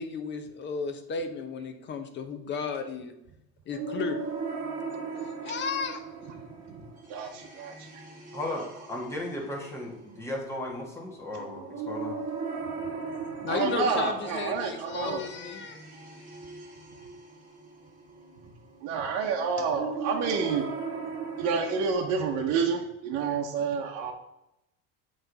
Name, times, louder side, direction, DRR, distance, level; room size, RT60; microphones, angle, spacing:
voice 1, 0.0-3.1 3.7-4.2 5.1-6.0 13.0-15.8, left 5 dB, 35° left, 7 dB, 0.8 m, -34 dB
sound 1, 3.7-21.9, right 4 dB, 30° right, 1.5 m, -39 dB
voice 2, 7.1-8.0 8.5-8.7 11.3-11.4 12.8-12.9 13.5-15.2 18.8-20.6 21.4-24.1, right 5 dB, 60° right, 1 dB, 0.8 m, -29 dB
voice 3, 8.3-12.2, left 1 dB, 10° left, -2 dB, 1.5 m, -36 dB
7.8 x 3.2 x 3.9 m, 0.87 s
cardioid pair, 130°, 31 cm